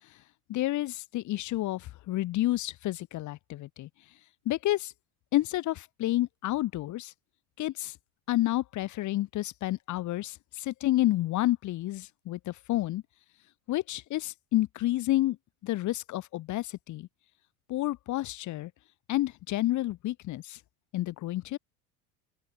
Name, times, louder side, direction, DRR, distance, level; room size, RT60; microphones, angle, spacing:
voice 1, 0.5-3.9 4.5-4.9 5.3-7.1 7.6-7.9 8.3-13.0 13.7-15.4 15.6-17.1 17.7-18.7 19.1-20.6 20.9-21.6, left 16 dB, 45° left, 1.0 m, -30 dB
open air
hypercardioid pair, 95°, 42 cm